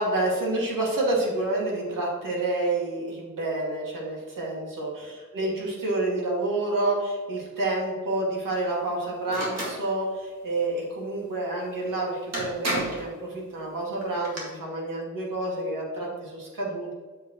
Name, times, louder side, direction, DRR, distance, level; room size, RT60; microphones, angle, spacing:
voice 1, 0.0-5.1 5.3-16.9, right 2 dB, 85° right, -3 dB, 2.2 m, -28 dB
sound 1, 9.3-9.8 11.8-11.9 12.3-13.1 14.0-14.4, right 1 dB, 55° right, 2.0 m, -30 dB
7.4 x 7.1 x 3.0 m, 1.5 s
wide cardioid pair, 175°, 32 cm